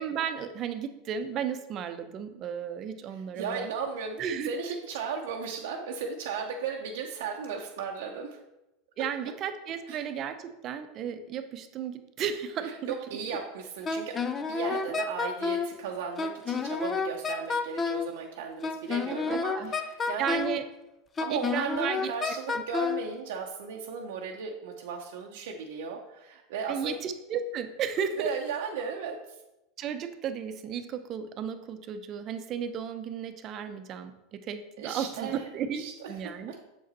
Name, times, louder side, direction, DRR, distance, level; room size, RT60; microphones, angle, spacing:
voice 1, 0.0-3.7 4.2-4.5 9.0-12.9 14.7-15.0 19.1-19.7 20.2-20.6 21.3-22.1 22.5-22.6 26.7-28.3 29.8-36.5, right 8 dB, 45° right, 9 dB, 0.7 m, -34 dB
voice 2, 3.3-8.4 9.0-9.1 9.9-10.0 12.6-20.4 21.2-26.9 28.2-29.2 34.8-35.5 35.7-36.6, right 5 dB, 80° right, 0 dB, 0.8 m, -36 dB
Wind instrument woodwind instrument, 13.8-15.7 16.2-18.1 18.6-20.6 21.2-23.0, left 5 dB, 25° left, 0.6 m, -30 dB
7.1 x 5.0 x 4.1 m, 0.94 s
supercardioid pair, 110°, 0 cm